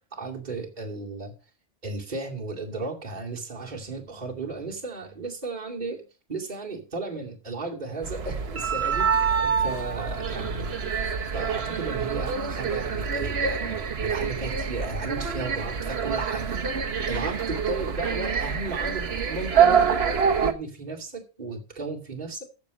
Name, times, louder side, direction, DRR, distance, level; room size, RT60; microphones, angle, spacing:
voice 1, 0.1-1.3 1.8-6.0 6.3-10.7 11.3-16.5 17.1-20.0 20.4-22.4, right 3 dB, 40° right, 2.7 m, -34 dB
sound 1, 8.0-20.5, right 6 dB, 60° right, 1.5 m, -26 dB
15.0 x 6.7 x 5.3 m
omnidirectional pair, 1.2 m